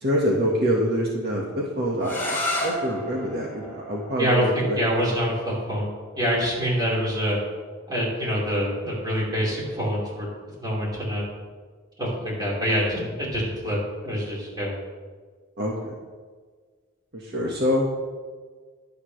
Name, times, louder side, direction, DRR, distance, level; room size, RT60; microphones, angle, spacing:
voice 1, 0.0-2.2 2.6-4.8 15.6-15.9 17.2-17.8, equal, 55° right, -3 dB, 1.7 m, -25 dB
sound 1, 2.0-7.7, left 1 dB, 10° left, 4.2 m, -34 dB
voice 2, 4.2-7.4 7.9-10.3 10.6-11.2 12.0-14.7, equal, 20° right, -5 dB, 4.6 m, -26 dB
22.0 x 8.8 x 3.4 m, 1.5 s
head